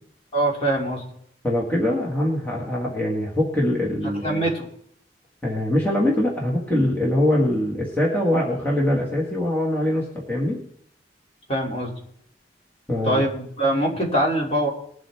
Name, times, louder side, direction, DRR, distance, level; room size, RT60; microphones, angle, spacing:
voice 1, 0.3-1.0 4.2-4.7 11.5-11.9 13.0-14.7, right 1 dB, 35° left, -1 dB, 2.8 m, -23 dB
voice 2, 1.4-4.4 5.4-10.6 12.9-13.2, left 1 dB, 10° left, -4 dB, 1.9 m, -23 dB
21.0 x 7.6 x 3.5 m, 0.66 s
head